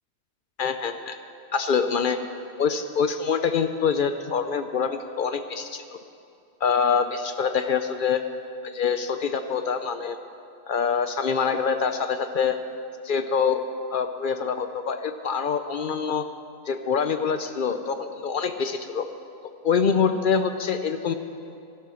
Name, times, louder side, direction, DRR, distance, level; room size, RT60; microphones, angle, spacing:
voice 1, 0.6-1.2 1.5-2.2 2.6-5.8 6.6-8.2 8.6-10.2 10.7-12.6 13.0-13.6 13.9-16.3 16.7-19.1 19.6-21.1, left 6 dB, 60° left, 9 dB, 0.5 m, -25 dB
14.0 x 12.0 x 6.2 m, 2.5 s
omnidirectional pair, 1.6 m